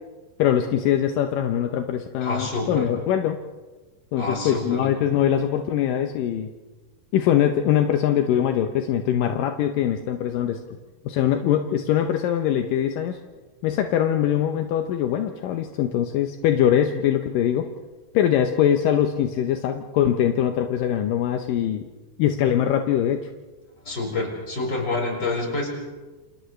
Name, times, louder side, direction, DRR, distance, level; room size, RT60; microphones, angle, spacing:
voice 1, 0.4-3.4 4.1-6.5 7.1-10.6 11.1-13.2 13.6-17.7 18.1-21.9 22.2-23.3, left 10 dB, 80° left, 5 dB, 2.5 m, -22 dB
voice 2, 2.2-2.9 4.2-4.9 23.8-25.7, left 2 dB, 30° left, -1 dB, 5.3 m, -27 dB
28.5 x 28.0 x 3.3 m, 1.2 s
omnidirectional pair, 4.0 m